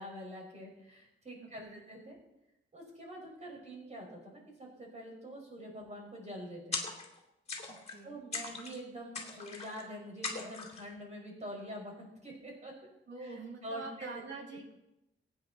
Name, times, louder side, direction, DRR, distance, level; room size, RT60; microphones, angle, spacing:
voice 1, 0.0-2.2 2.7-6.8 8.0-12.7 13.2-14.2, equal, 35° right, 0 dB, 5.2 m, -45 dB
voice 2, 1.4-1.8 7.7-8.2 13.1-14.8, right 3 dB, 60° right, 1 dB, 3.0 m, -46 dB
sound 1, 6.7-7.2 7.5-8.0 8.3-8.8 9.1-9.8 10.2-10.9, left 4 dB, 30° left, 2.9 m, -40 dB
23.5 x 9.4 x 4.2 m, 0.88 s
wide cardioid pair, 160°, 21 cm